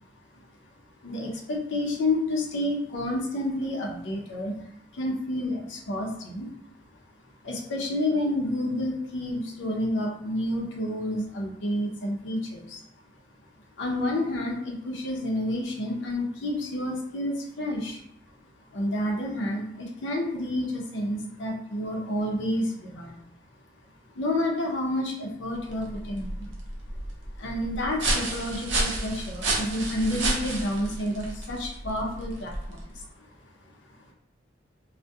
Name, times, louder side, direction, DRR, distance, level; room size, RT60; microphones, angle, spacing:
voice 1, 1.0-4.5 4.9-6.5 7.4-12.8 13.8-18.0 18.7-23.2 24.2-26.5 27.4-33.1, left 1 dB, 75° left, 0 dB, 0.5 m, -29 dB
sound 1, 25.6-33.0, right 2 dB, 70° right, 0.5 m, -31 dB
2.3 x 2.1 x 2.6 m, 0.72 s
head